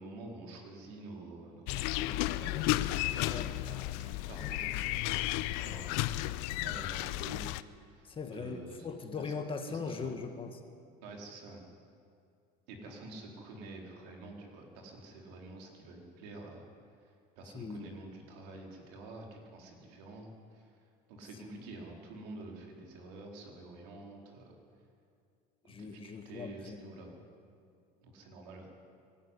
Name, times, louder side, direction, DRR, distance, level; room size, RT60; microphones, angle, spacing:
voice 1, 0.0-2.7 3.2-7.4 7.9-8.9 9.2-9.3 9.7-10.1 11.0-11.6 12.7-16.7 17.0-20.8 21.1-24.6 25.6-27.2 28.0-28.7, right 2 dB, 85° right, 1 dB, 4.2 m, -49 dB
sound 1, 1.7-7.6, left 16 dB, 75° left, 0.7 m, -33 dB
voice 2, 8.1-10.5 17.5-17.9 21.4-21.6 25.7-26.8, left 5 dB, 25° left, 5 dB, 1.9 m, -40 dB
23.5 x 12.0 x 9.8 m, 2.4 s
supercardioid pair, 125°, 21 cm